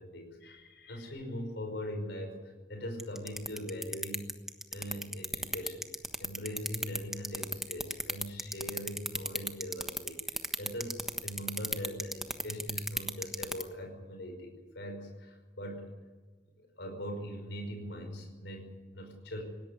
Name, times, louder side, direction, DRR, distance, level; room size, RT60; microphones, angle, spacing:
voice 1, 0.0-2.3 2.7-4.2 4.7-5.9 6.2-15.9 16.6-19.4, equal, 75° left, 3 dB, 5.5 m, -41 dB
sound 1, 3.0-13.6, right 1 dB, ahead, 1.3 m, -33 dB
20.5 x 17.5 x 9.7 m, 1.4 s
head